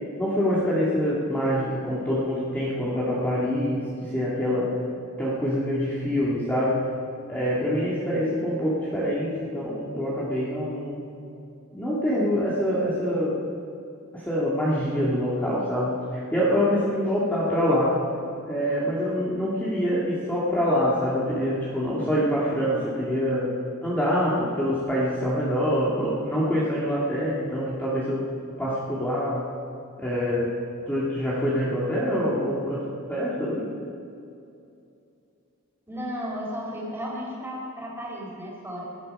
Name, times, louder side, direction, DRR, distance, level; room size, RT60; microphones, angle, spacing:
voice 1, 0.2-4.7 5.2-6.9 7.3-11.1 11.7-13.4 14.1-18.0 18.4-23.5 23.8-29.5 30.0-30.5 30.9-33.7, equal, 10° left, -8 dB, 2.1 m, -25 dB
voice 2, 35.9-38.8, equal, 10° right, -4 dB, 4.1 m, -34 dB
18.5 x 12.0 x 5.4 m, 2.6 s
head